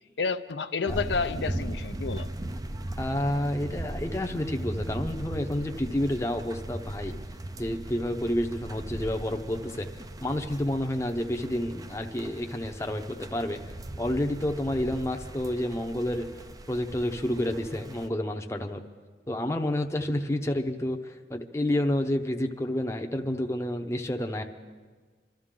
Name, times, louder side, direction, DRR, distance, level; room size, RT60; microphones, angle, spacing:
voice 1, 0.2-2.3, left 4 dB, 85° left, 9 dB, 0.6 m, -30 dB
sound 1, 0.9-18.1, right 1 dB, 20° right, 0.4 m, -38 dB
voice 2, 3.0-7.1 7.6-9.9 10.2-13.6 14.0-16.3 16.7-18.8 19.3-24.4, left 1 dB, 15° left, 5 dB, 0.7 m, -29 dB
26.0 x 13.0 x 3.7 m, 1.5 s
head